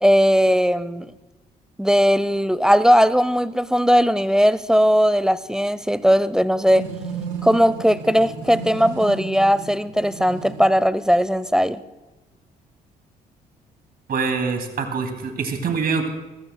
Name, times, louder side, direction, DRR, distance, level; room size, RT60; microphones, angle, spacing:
voice 1, 0.0-1.1 1.8-6.9 7.4-11.8, equal, 5° right, 16 dB, 0.7 m, -18 dB
sound 1, 6.7-10.7, right 5 dB, 80° right, 4.6 m, -34 dB
voice 2, 14.1-16.1, right 5 dB, 55° right, 5 dB, 2.5 m, -24 dB
23.0 x 15.5 x 2.2 m, 1.1 s
supercardioid pair, 60°, 19 cm